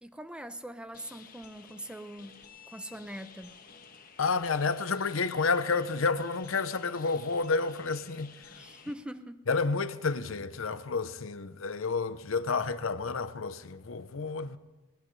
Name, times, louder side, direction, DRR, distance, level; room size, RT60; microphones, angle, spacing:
voice 1, 0.0-2.4 2.7-3.6 8.5-9.4, right 1 dB, 5° right, 0.6 m, -42 dB
sound 1, 0.9-8.9, left 5 dB, 45° left, 1.3 m, -53 dB
voice 2, 4.2-8.5 9.5-14.6, left 4 dB, 75° left, 0.7 m, -30 dB
21.0 x 18.0 x 3.3 m
head